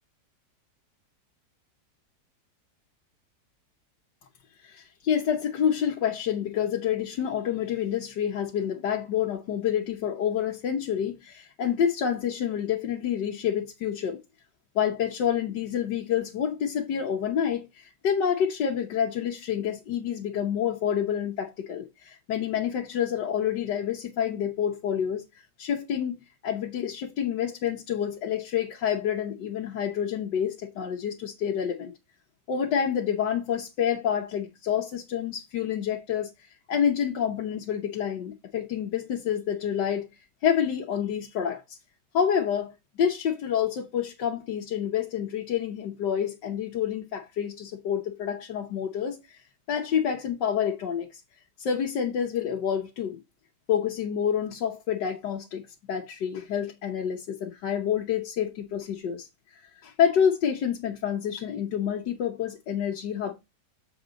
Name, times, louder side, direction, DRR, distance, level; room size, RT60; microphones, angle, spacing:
voice 1, 4.6-14.2 14.7-25.2 25.6-31.9 32.5-36.3 36.7-40.1 40.4-41.8 42.1-49.4 49.7-51.2 51.6-53.2 53.7-59.3 59.8-63.3, left 8 dB, 85° left, 1.6 m, -28 dB
7.1 x 4.1 x 5.0 m
omnidirectional pair, 1.8 m